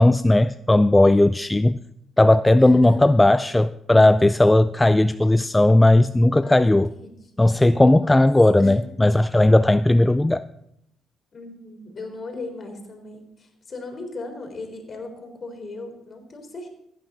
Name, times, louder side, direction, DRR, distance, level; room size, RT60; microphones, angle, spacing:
voice 1, 0.0-1.8 2.2-6.9 7.4-10.5, left 1 dB, 10° left, 0.3 m, -16 dB
voice 2, 2.6-3.1 6.4-7.1 7.8-8.1 8.6-8.8 11.3-16.7, left 2 dB, 45° left, 3.7 m, -37 dB
15.5 x 9.5 x 3.9 m
cardioid pair, 90°, 0 cm